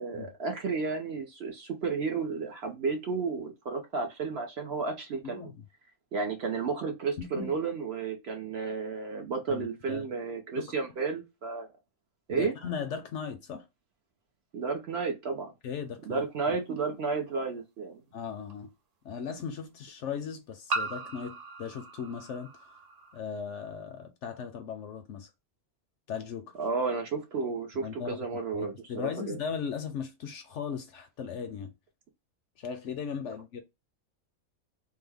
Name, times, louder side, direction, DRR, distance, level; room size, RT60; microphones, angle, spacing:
voice 1, 0.0-5.5 6.1-11.7 12.3-12.5 14.5-15.5 16.0-18.0 26.6-29.4, right 4 dB, 55° right, 0.9 m, -32 dB
voice 2, 5.2-5.6 7.4-7.5 9.5-10.1 10.6-10.8 12.3-13.7 15.6-16.2 16.5-16.6 18.1-18.7 19.0-22.5 23.1-25.3 26.1-26.5 27.7-31.7 32.6-33.6, left 6 dB, 65° left, 0.8 m, -37 dB
sound 1, 16.8-16.9 18.5-18.6 20.7-23.2, right 3 dB, 75° right, 0.3 m, -37 dB
3.3 x 2.1 x 3.4 m
omnidirectional pair, 1.5 m